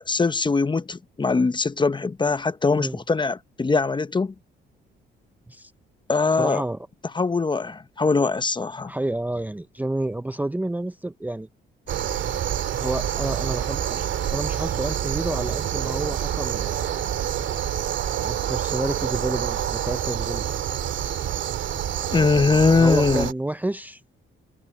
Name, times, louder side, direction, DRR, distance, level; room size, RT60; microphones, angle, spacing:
voice 1, 0.0-4.3 6.1-6.6 7.1-8.9 22.1-23.3, left 4 dB, 25° left, 0.9 m, -22 dB
voice 2, 6.4-6.8 8.9-11.5 12.8-17.0 18.1-20.4 22.4-24.0, right 1 dB, 10° right, 0.7 m, -30 dB
sound 1, 11.9-23.2, left 13 dB, 85° left, 3.1 m, -47 dB
sound 2, 11.9-23.3, right 10 dB, 70° right, 2.1 m, -27 dB
cardioid pair, 90°, 20 cm